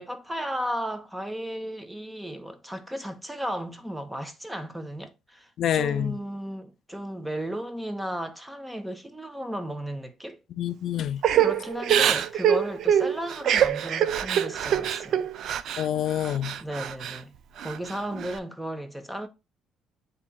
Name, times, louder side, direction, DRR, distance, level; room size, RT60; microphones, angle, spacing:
voice 1, 0.0-10.4 11.4-15.3 16.6-17.3 17.6-19.3, equal, 5° right, 0.6 m, -34 dB
voice 2, 5.6-6.2 10.6-11.2 15.8-16.5, left 10 dB, 60° left, 0.4 m, -27 dB
Crying sobbing / Breathing, 11.2-15.8 16.2-17.2 17.6-18.3, right 9 dB, 65° right, 0.4 m, -24 dB
8.2 x 2.8 x 2.2 m
cardioid pair, 100°, 0 cm